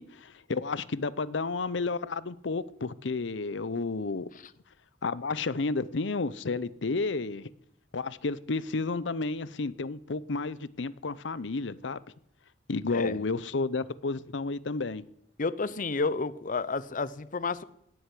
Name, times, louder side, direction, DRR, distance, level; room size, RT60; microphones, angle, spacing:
voice 1, 0.0-4.3 5.0-7.5 7.9-12.0 12.7-15.0, left 3 dB, 85° left, 17 dB, 0.7 m, -31 dB
voice 2, 15.4-17.6, left 4 dB, 45° left, 17 dB, 0.7 m, -30 dB
18.5 x 8.0 x 8.4 m, 0.73 s
head